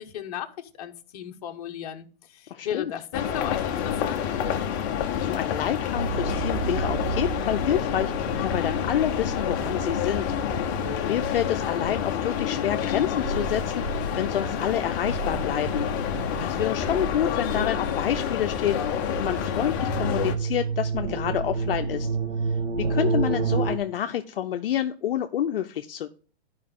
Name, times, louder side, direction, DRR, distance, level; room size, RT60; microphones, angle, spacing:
voice 1, 0.0-2.0 2.3-4.2, left 10 dB, 35° left, 1.0 m, -35 dB
voice 2, 2.5-2.9 5.2-13.9 14.2-15.9 16.1-22.1 22.8-26.1, left 10 dB, 60° left, 0.6 m, -28 dB
sound 1, 3.1-20.3, left 8 dB, 20° left, 0.7 m, -28 dB
sound 2, 6.0-23.8, right 4 dB, 85° right, 1.7 m, -32 dB
11.5 x 5.0 x 3.6 m
hypercardioid pair, 160°, 32 cm